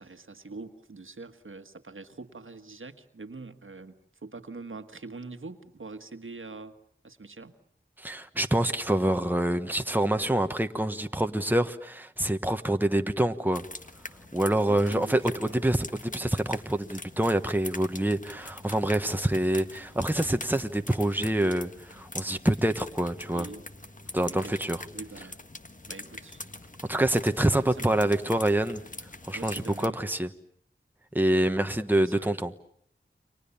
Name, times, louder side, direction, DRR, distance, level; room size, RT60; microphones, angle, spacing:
voice 1, 0.0-3.9 4.2-6.8 7.0-7.5 14.7-15.6 23.3-23.6 24.3-24.6 24.9-25.4 25.9-26.4 27.6-28.1 29.3-30.0 31.4-31.6 32.0-32.3, right 3 dB, 80° right, 1.6 m, -44 dB
voice 2, 8.0-13.6 14.3-23.5 24.1-24.8 26.9-28.8 29.2-30.3 31.1-32.5, right 1 dB, 10° right, 1.4 m, -26 dB
sound 1, 13.5-29.9, left 2 dB, 40° left, 1.6 m, -43 dB
30.0 x 24.5 x 7.2 m
wide cardioid pair, 45°, 21 cm